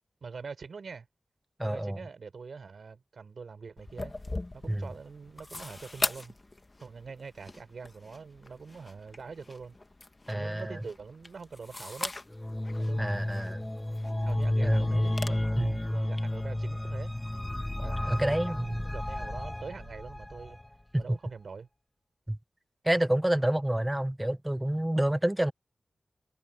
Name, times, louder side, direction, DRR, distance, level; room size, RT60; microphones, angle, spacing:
voice 1, 0.2-1.1 1.6-4.1 4.5-6.3 6.8-9.8 10.3-12.1 12.8-13.5 14.2-17.1 17.8-20.6 21.0-21.7, right 5 dB, 75° right, 5.5 m, -44 dB
voice 2, 1.6-2.0 4.7-4.9 10.3-10.8 13.0-13.6 14.6-14.9 15.6-15.8 18.1-18.8 20.9-21.2 22.3-22.4 22.8-25.5, right 1 dB, 10° right, 1.0 m, -28 dB
sound 1, 3.8-15.3, left 2 dB, 30° left, 1.3 m, -41 dB
sound 2, 12.3-20.6, left 1 dB, 15° left, 0.4 m, -31 dB
wide cardioid pair, 70°, 0 cm